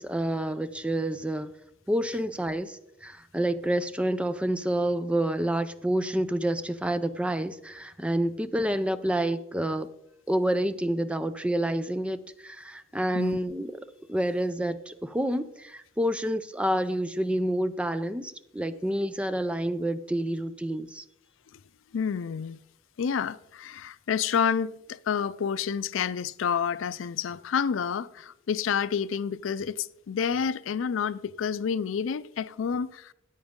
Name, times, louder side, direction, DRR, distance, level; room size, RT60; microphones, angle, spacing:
voice 1, 0.0-1.5 1.9-9.9 10.3-13.8 14.1-21.0, right 1 dB, 5° right, 0.5 m, -28 dB
voice 2, 21.9-22.6 23.0-33.1, left 7 dB, 90° left, 0.4 m, -29 dB
13.5 x 8.9 x 3.7 m
head